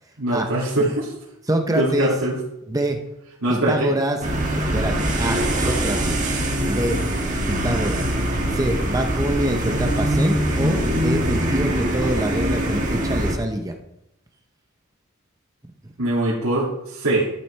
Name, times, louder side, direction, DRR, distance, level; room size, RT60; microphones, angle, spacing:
voice 1, 0.2-1.1 1.7-2.4 3.4-3.9 16.0-17.3, right 1 dB, 80° right, -7 dB, 2.4 m, -22 dB
voice 2, 1.5-2.1 2.7-3.0 3.5-4.2 4.5-6.2 6.6-7.1 7.5-8.1 8.5-13.7, right 1 dB, 15° right, 4 dB, 0.7 m, -25 dB
sound 1, 4.2-13.3, right 1 dB, 35° right, 1.6 m, -23 dB
12.5 x 8.3 x 3.3 m, 0.87 s
head